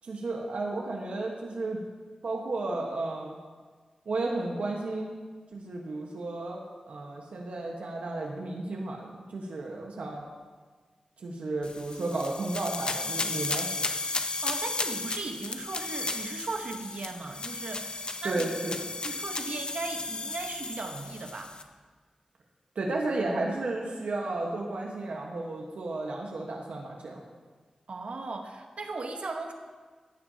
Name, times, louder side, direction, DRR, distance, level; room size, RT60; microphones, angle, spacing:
voice 1, 0.0-1.8 2.2-3.3 4.0-5.2 5.5-10.2 11.2-13.7 18.2-18.9 22.7-27.2, right 2 dB, 85° right, -1 dB, 1.3 m, -33 dB
sound 1, 11.6-21.6, left 3 dB, 45° left, 0.8 m, -34 dB
voice 2, 14.4-18.6 19.0-21.5 27.9-29.5, right 3 dB, 65° right, 4 dB, 1.1 m, -37 dB
14.5 x 10.5 x 2.8 m, 1.4 s
wide cardioid pair, 70°, 2 cm